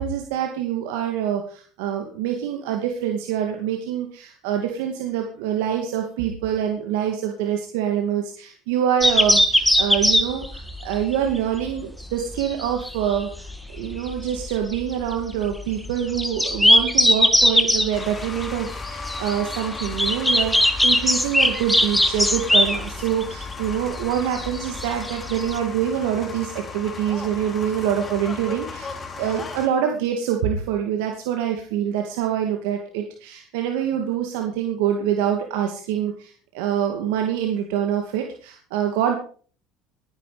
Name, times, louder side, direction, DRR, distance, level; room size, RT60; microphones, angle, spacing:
voice 1, 0.0-28.9 29.2-39.2, right 9 dB, 85° right, 3 dB, 2.5 m, -25 dB
sound 1, 9.0-25.6, left 1 dB, 5° left, 1.8 m, -21 dB
sound 2, 17.9-29.7, left 4 dB, 25° left, 3.2 m, -36 dB
20.0 x 10.5 x 5.2 m, 0.43 s
supercardioid pair, 110°, 0 cm